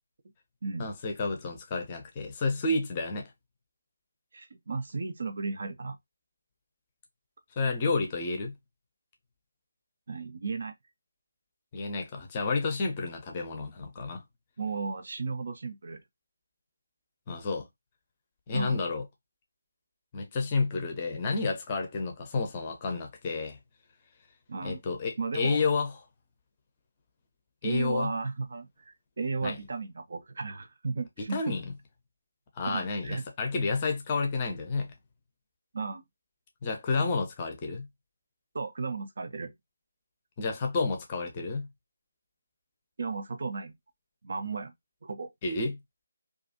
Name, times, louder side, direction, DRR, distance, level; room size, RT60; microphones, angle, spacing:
voice 1, 0.8-3.3 7.6-8.5 11.7-14.2 17.3-17.7 18.5-19.0 20.1-23.6 24.6-25.9 27.6-28.1 29.4-29.6 31.3-31.6 32.5-34.9 36.6-37.9 40.4-41.7 45.4-45.8, left 3 dB, 25° left, 0.6 m, -30 dB
voice 2, 4.3-6.0 10.1-10.7 14.6-16.0 18.5-18.8 24.5-24.8 25.2-25.6 27.6-31.5 32.7-33.2 35.7-36.0 38.5-39.5 43.0-43.7 44.2-44.7 45.0-45.3, right 4 dB, 50° right, 0.4 m, -34 dB
2.4 x 2.3 x 2.7 m
figure-of-eight pair, 150°, 0 cm